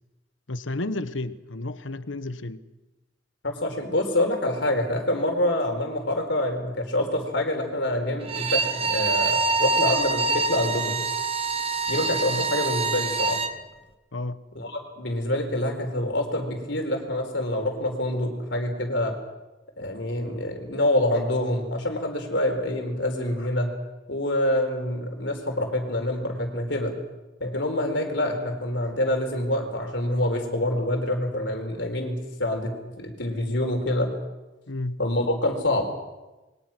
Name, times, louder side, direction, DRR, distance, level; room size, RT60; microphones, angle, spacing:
voice 1, 0.5-2.6 12.3-12.5 14.1-14.4 34.7-35.0, left 2 dB, 90° left, 1.3 m, -32 dB
voice 2, 3.4-11.0 11.9-13.4 14.5-19.1 19.8-23.7 24.1-26.9 27.4-34.1 35.0-35.9, left 1 dB, 70° left, 4.6 m, -26 dB
Bowed string instrument, 8.2-13.6, right 4 dB, 30° right, 1.4 m, -25 dB
28.0 x 23.0 x 6.1 m
head